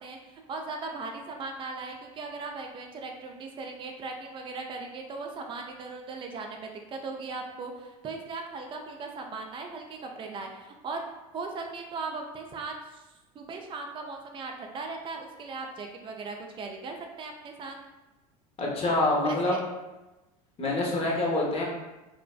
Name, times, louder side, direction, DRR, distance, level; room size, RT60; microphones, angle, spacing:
voice 1, 0.0-11.0 11.3-13.1 13.3-17.8 19.2-19.6, right 3 dB, 25° right, 2 dB, 0.4 m, -38 dB
voice 2, 18.6-19.6 20.6-21.6, left 2 dB, 30° left, -3 dB, 0.7 m, -26 dB
2.5 x 2.1 x 2.3 m, 1.1 s
hypercardioid pair, 85°, 19 cm